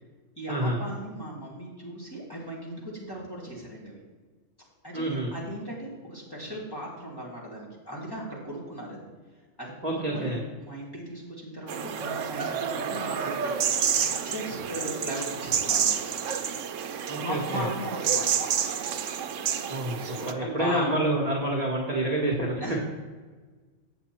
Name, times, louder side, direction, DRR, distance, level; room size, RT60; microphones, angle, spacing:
voice 1, 0.4-4.0 4.8-9.0 9.6-16.0 17.2-18.7 20.0-21.0 22.6-22.8, equal, 20° left, -5 dB, 2.3 m, -37 dB
voice 2, 4.9-5.3 9.8-10.4 17.1-17.7 19.7-19.9 20.3-22.6, right 1 dB, 30° right, -2 dB, 1.3 m, -28 dB
sound 1, 11.7-20.3, right 7 dB, 75° right, 1.0 m, -29 dB
8.1 x 7.4 x 4.4 m, 1.4 s
omnidirectional pair, 1.3 m